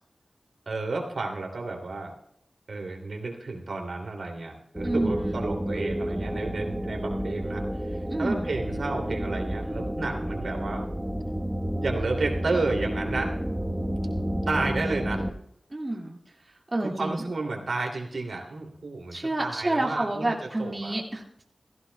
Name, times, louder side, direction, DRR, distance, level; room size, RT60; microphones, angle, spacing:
voice 1, 0.7-2.1 2.7-7.6 8.2-10.8 11.8-13.3 14.5-15.2 16.8-20.9, right 3 dB, 85° right, 2 dB, 2.7 m, -31 dB
sound 1, 4.7-15.3, equal, 10° right, 1.1 m, -30 dB
voice 2, 4.8-5.5 8.1-8.5 15.7-16.2 16.7-17.3 19.1-21.4, right 1 dB, 30° right, -1 dB, 2.0 m, -29 dB
15.5 x 15.5 x 2.3 m, 0.70 s
wide cardioid pair, 85°, 0 cm